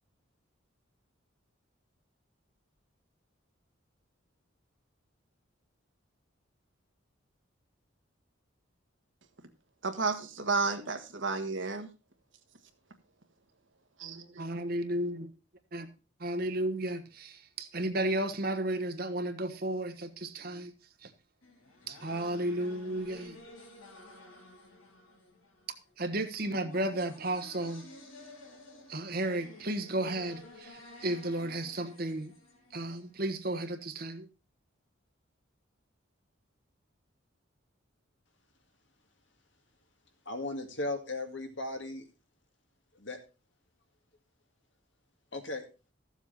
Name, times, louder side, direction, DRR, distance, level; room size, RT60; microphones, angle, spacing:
voice 1, 9.8-11.9 14.0-14.7, right 4 dB, 70° right, 1.6 m, -32 dB
voice 2, 14.4-15.3 15.7-15.9 16.2-20.7 21.0-21.1 21.9-23.4 26.0-27.8 28.9-32.3 32.7-34.3, right 1 dB, 45° right, 1.2 m, -33 dB
sound 1, 21.4-33.3, left 2 dB, 90° left, 3.2 m, -52 dB
voice 3, 40.3-42.0 43.0-43.2 45.3-45.6, left 2 dB, 65° left, 2.2 m, -36 dB
14.5 x 7.3 x 4.2 m
head